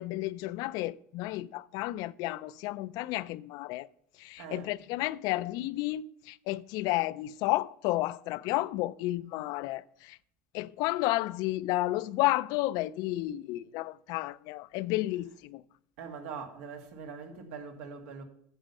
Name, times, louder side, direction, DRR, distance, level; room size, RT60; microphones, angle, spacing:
voice 1, 0.0-3.9 4.2-10.2 10.5-15.6, left 17 dB, 65° left, 0.4 m, -32 dB
voice 2, 4.4-4.7 16.0-18.2, right 6 dB, 85° right, 1.8 m, -42 dB
8.9 x 7.1 x 5.4 m
supercardioid pair, 105°, 7 cm